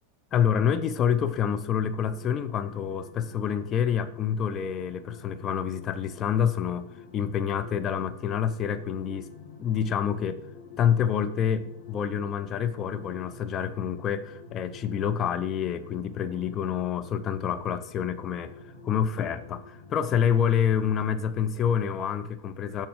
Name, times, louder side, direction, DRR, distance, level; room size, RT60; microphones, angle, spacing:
voice 1, 0.3-9.3 9.6-10.4 10.8-22.9, left 8 dB, 30° left, 10 dB, 0.4 m, -27 dB
sound 1, 0.7-20.0, left 4 dB, 50° left, 1.6 m, -48 dB
7.6 x 5.5 x 3.7 m, 0.76 s
figure-of-eight pair, 90°, 0 cm